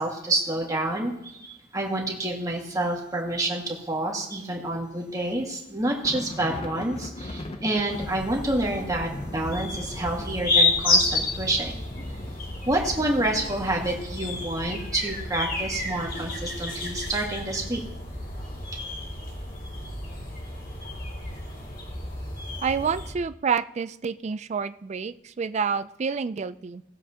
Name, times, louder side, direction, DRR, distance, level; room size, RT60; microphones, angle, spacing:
voice 1, 0.0-11.8 12.7-17.8, right 1 dB, 20° right, -1 dB, 1.8 m, -28 dB
sound 1, 5.3-5.5 5.7-14.5, left 1 dB, 30° left, 0.6 m, -41 dB
sound 2, 7.9-23.1, left 2 dB, 45° left, 2.2 m, -30 dB
voice 2, 22.6-26.8, right 6 dB, 35° right, 13 dB, 0.3 m, -28 dB
19.0 x 7.3 x 2.8 m, 0.87 s
head